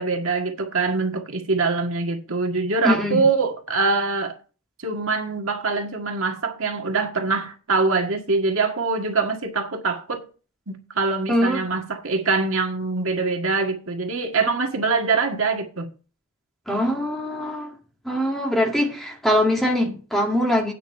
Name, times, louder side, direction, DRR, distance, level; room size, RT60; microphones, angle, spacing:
voice 1, 0.0-4.4 4.8-10.2 10.7-15.9, right 4 dB, 75° right, 1.8 m, -24 dB
voice 2, 2.8-3.2 11.3-11.6 16.7-17.8 18.0-20.7, left 1 dB, ahead, 2.1 m, -22 dB
9.0 x 5.1 x 7.5 m
head